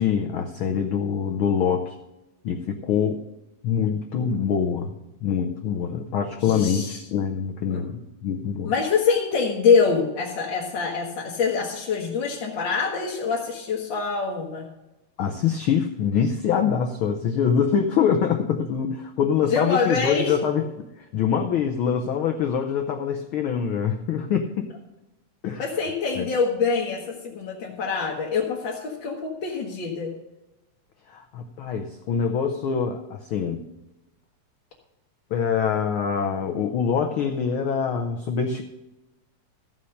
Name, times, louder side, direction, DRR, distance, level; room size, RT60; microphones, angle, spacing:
voice 1, 0.0-2.0 2.4-3.2 3.6-8.7 15.2-24.7 25.4-25.6 26.2-26.3 31.1-33.6 35.3-38.6, left 7 dB, 80° left, 4 dB, 1.1 m, -24 dB
voice 2, 6.4-7.0 7.7-7.8 8.6-14.7 19.5-20.4 25.6-30.1, left 5 dB, 50° left, -2 dB, 1.6 m, -25 dB
14.5 x 5.7 x 6.4 m, 1.0 s
omnidirectional pair, 3.3 m